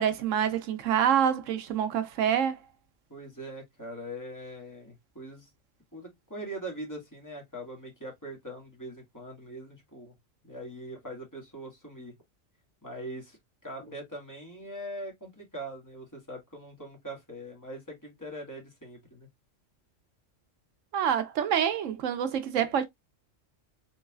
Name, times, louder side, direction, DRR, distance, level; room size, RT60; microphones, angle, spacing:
voice 1, 0.0-2.6 20.9-22.8, right 9 dB, 75° right, 1.0 m, -26 dB
voice 2, 3.1-5.5 5.9-10.1 10.4-12.1 12.8-19.3, right 1 dB, 15° left, 1.8 m, -42 dB
4.0 x 3.8 x 2.3 m
omnidirectional pair, 1.3 m